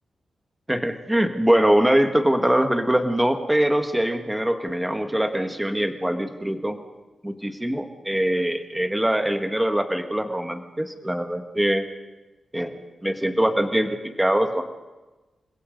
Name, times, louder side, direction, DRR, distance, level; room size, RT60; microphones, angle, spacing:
voice 1, 0.7-6.8 7.2-11.8 12.5-14.6, right 1 dB, 5° right, 7 dB, 1.6 m, -23 dB
29.0 x 21.5 x 5.3 m, 1.2 s
wide cardioid pair, 175°, 0 cm